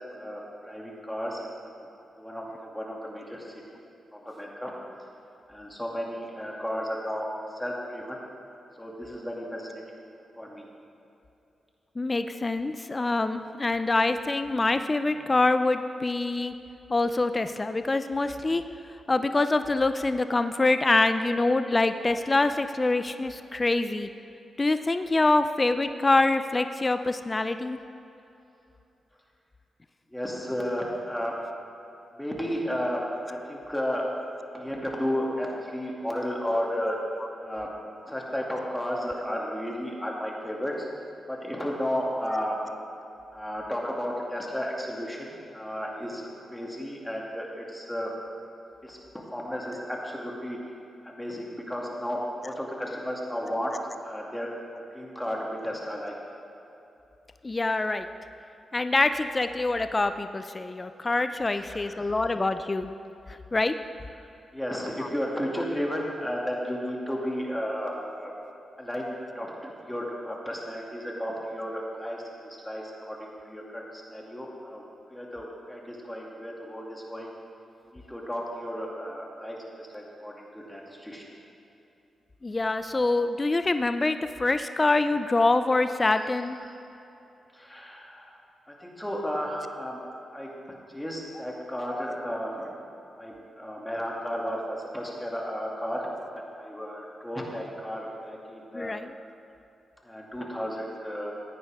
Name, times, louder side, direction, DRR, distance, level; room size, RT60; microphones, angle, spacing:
voice 1, 0.1-1.9 2.2-3.8 4.1-4.7 5.5-8.2 8.7-9.8 10.4-10.7 30.1-31.3 32.1-34.1 34.5-37.0 37.4-37.7 38.1-40.9 41.3-42.6 43.3-48.1 48.8-49.0 49.3-50.6 51.0-53.7 54.0-56.1 61.5-62.1 64.1-68.3 68.8-74.8 75.1-77.3 77.8-81.2 86.0-86.7 87.5-88.4 88.7-90.0 90.3-90.5 90.9-92.7 93.2-98.9 100.0-101.3, equal, 10° left, -2 dB, 2.5 m, -33 dB
voice 2, 12.0-16.5 16.9-18.6 19.1-24.1 24.6-27.8 57.4-58.1 58.7-62.9 63.5-63.7 82.4-86.6 98.7-99.1, left 2 dB, 30° left, 10 dB, 0.5 m, -25 dB
15.0 x 9.4 x 3.6 m, 2.9 s
cardioid pair, 55°, 0 cm